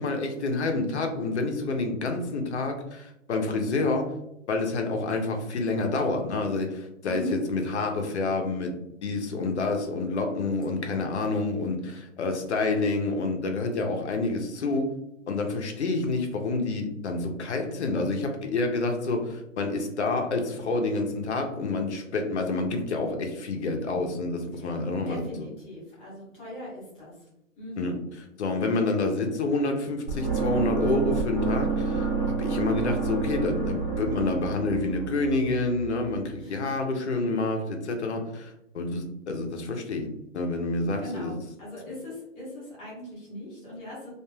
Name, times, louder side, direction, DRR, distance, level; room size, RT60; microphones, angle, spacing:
voice 1, 0.0-4.1 4.5-14.9 15.3-25.5 27.8-27.9 28.4-41.3, left 3 dB, 55° left, 4 dB, 0.7 m, -28 dB
voice 2, 7.0-7.4 10.7-11.0 24.6-27.1 27.6-27.9 36.4-36.7 41.0-44.1, left 1 dB, 15° left, -7 dB, 0.8 m, -39 dB
sound 1, 30.1-36.1, right 5 dB, 40° right, 0.8 m, -29 dB
2.5 x 2.3 x 3.1 m, 0.85 s
hypercardioid pair, 145°, 40 cm